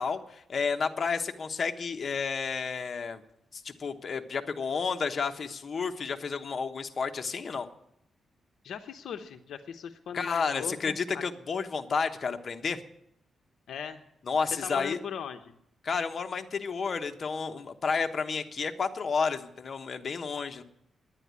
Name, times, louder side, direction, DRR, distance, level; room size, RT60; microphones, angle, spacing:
voice 1, 0.0-3.2 3.5-7.7 10.1-12.8 14.3-15.0 15.8-20.6, left 5 dB, 50° left, 5 dB, 1.1 m, -31 dB
voice 2, 8.6-11.2 13.7-14.0 14.6-15.6, left 8 dB, 85° left, 8 dB, 0.8 m, -39 dB
10.0 x 9.9 x 9.6 m, 0.76 s
cardioid pair, 100°, 0 cm